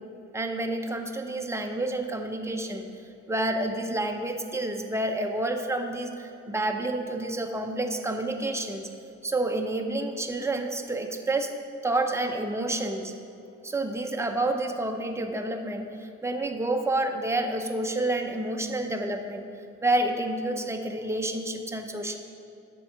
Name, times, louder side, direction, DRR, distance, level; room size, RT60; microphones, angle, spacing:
voice 1, 0.3-2.9 3.3-8.9 9.2-11.5 11.8-13.2 13.6-19.4 19.8-22.2, right 2 dB, 10° right, 4 dB, 0.7 m, -29 dB
8.2 x 4.7 x 6.4 m, 2.6 s
cardioid pair, 90°, 30 cm